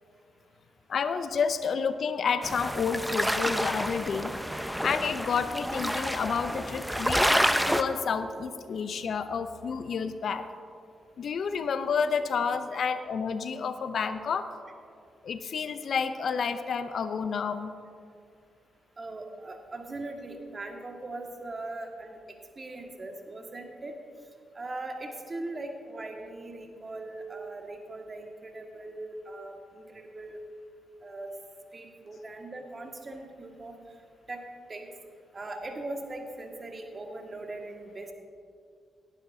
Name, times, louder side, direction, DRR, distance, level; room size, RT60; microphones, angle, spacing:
voice 1, 0.9-4.3 4.8-10.5 11.2-14.5 15.2-17.7, left 6 dB, 65° left, 11 dB, 0.6 m, -30 dB
sound 1, 2.4-7.8, equal, ahead, 0.8 m, -28 dB
voice 2, 19.0-22.2 22.6-24.0 24.5-30.4 31.0-31.3 31.7-33.8 34.3-34.4 34.7-34.9 35.3-38.1, right 2 dB, 40° right, 2 dB, 1.9 m, -40 dB
17.5 x 11.5 x 2.8 m, 2.3 s
hypercardioid pair, 45°, 0 cm